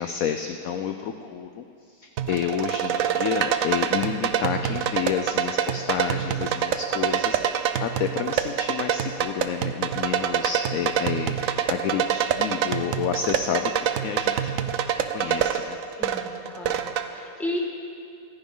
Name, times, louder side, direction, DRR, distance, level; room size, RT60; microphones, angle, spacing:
voice 1, 0.0-15.8, left 8 dB, 65° left, 7 dB, 0.9 m, -30 dB
sound 1, 2.2-17.1, right 9 dB, 65° right, 0.9 m, -26 dB
voice 2, 16.0-17.6, left 1 dB, ahead, -2 dB, 1.5 m, -34 dB
24.5 x 10.0 x 3.8 m, 2.5 s
omnidirectional pair, 1.9 m